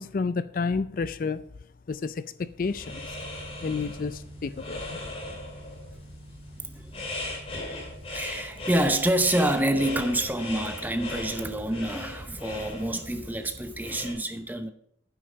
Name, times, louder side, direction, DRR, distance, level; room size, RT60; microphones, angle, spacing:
voice 1, 0.0-1.4 1.9-3.2 3.6-5.0, left 4 dB, 50° left, 0.4 m, -30 dB
sound 1, 2.6-14.1, left 2 dB, 30° left, 2.6 m, -38 dB
sound 2, 2.8-8.2, right 1 dB, 60° right, 4.0 m, -47 dB
voice 2, 8.1-14.7, right 1 dB, 10° right, 0.7 m, -27 dB
9.7 x 8.7 x 4.9 m
head